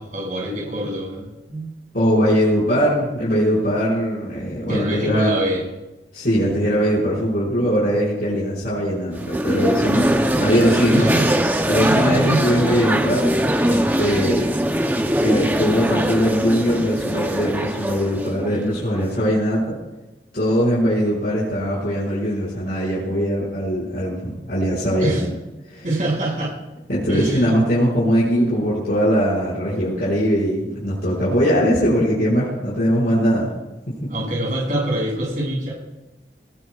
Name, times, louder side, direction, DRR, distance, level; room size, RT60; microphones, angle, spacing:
voice 1, 0.0-1.8 4.7-5.6 10.9-11.3 11.8-12.5 25.0-25.2 25.8-26.5 27.1-27.5 34.1-35.7, right 1 dB, 50° right, -4 dB, 6.6 m, -25 dB
voice 2, 1.9-5.4 6.1-11.1 11.7-13.3 13.6-14.5 15.2-19.8 20.3-25.2 25.7-25.9 26.9-33.5 33.9-34.1, equal, 55° left, -8 dB, 5.8 m, -21 dB
sound 1, 9.1-19.1, right 1 dB, 10° right, 0.8 m, -21 dB
22.0 x 20.0 x 2.5 m, 1.0 s
head